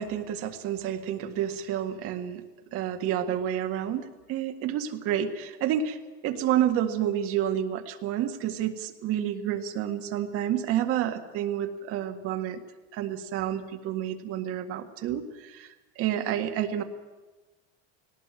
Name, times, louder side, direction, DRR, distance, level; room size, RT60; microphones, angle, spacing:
voice 1, 0.0-2.4 2.7-6.0 6.2-12.6 12.9-15.7 16.0-16.8, right 10 dB, 45° right, 7 dB, 1.8 m, -29 dB
18.5 x 18.0 x 9.0 m, 1.2 s
cardioid pair, 155°, 31 cm